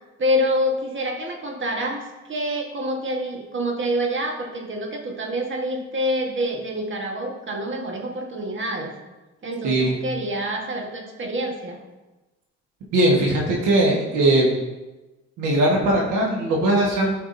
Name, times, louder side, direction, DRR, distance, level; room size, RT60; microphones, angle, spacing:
voice 1, 0.2-2.0 2.3-8.9 9.4-11.8, equal, 40° right, 2 dB, 1.4 m, -26 dB
voice 2, 9.6-9.9 12.9-14.5 15.4-17.1, right 1 dB, 90° right, -2 dB, 1.5 m, -19 dB
12.5 x 5.0 x 2.7 m, 1.1 s
cardioid pair, 90°, 30 cm